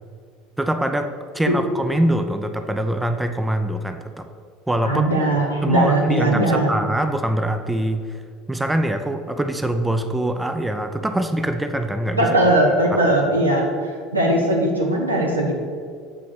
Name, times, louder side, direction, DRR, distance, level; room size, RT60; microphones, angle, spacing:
voice 1, 0.6-1.1 1.3-4.3 4.7-5.1 5.6-8.0 8.5-12.3 12.9-13.0, right 1 dB, 5° right, 7 dB, 0.5 m, -23 dB
voice 2, 4.8-6.8 12.2-15.5, right 1 dB, 90° right, -2 dB, 1.3 m, -19 dB
7.4 x 4.1 x 6.5 m, 2.1 s
figure-of-eight pair, 70°, 0 cm